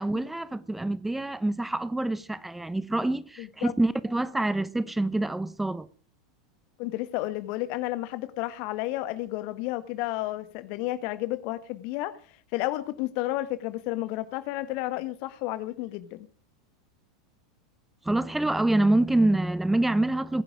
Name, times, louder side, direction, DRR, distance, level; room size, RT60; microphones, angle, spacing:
voice 1, 0.0-5.9 18.0-20.4, right 2 dB, 5° right, 0.9 m, -26 dB
voice 2, 3.4-3.7 6.8-12.1 12.5-16.3, left 16 dB, 50° left, 1.5 m, -31 dB
22.0 x 10.5 x 5.0 m
figure-of-eight pair, 85°, 3 cm